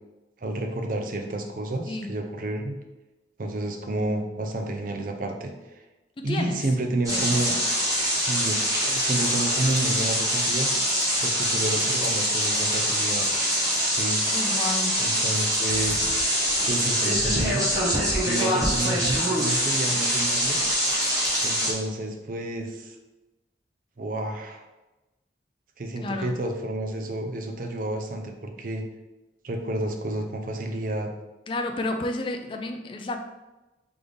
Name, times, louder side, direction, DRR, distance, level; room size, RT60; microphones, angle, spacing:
voice 1, 0.4-2.8 3.4-5.5 6.2-7.6 8.1-10.7 11.2-13.2 13.9-14.2 15.0-16.1 16.7-17.6 18.2-20.6 21.4-23.0 24.0-24.6 25.8-28.8 29.4-31.1, right 2 dB, 50° right, 3 dB, 0.5 m, -30 dB
voice 2, 6.2-6.7 7.1-7.4 9.2-9.6 14.3-15.0 26.0-26.4 31.5-33.2, left 2 dB, 30° left, 5 dB, 0.4 m, -31 dB
sound 1, 7.0-21.7, equal, 20° right, 1.2 m, -24 dB
3.4 x 3.3 x 3.9 m, 1.1 s
head